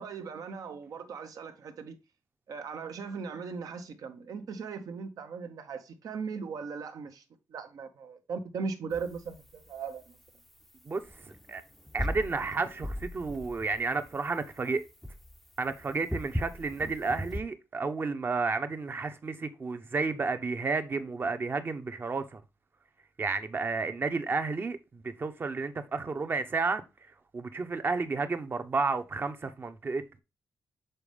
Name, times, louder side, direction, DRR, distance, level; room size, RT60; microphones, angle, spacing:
voice 1, 0.0-2.0 2.5-7.2 7.5-10.2, right 5 dB, 70° right, 1.1 m, -38 dB
sound 1, 8.9-9.4 9.7-9.8 11.1-14.5 15.0-17.4, left 1 dB, ahead, 0.6 m, -37 dB
voice 2, 10.8-11.6 11.9-14.8 15.6-22.4 23.2-26.8 27.3-30.2, right 4 dB, 35° right, 0.9 m, -32 dB
6.8 x 4.2 x 3.5 m
cardioid pair, 105°, 6 cm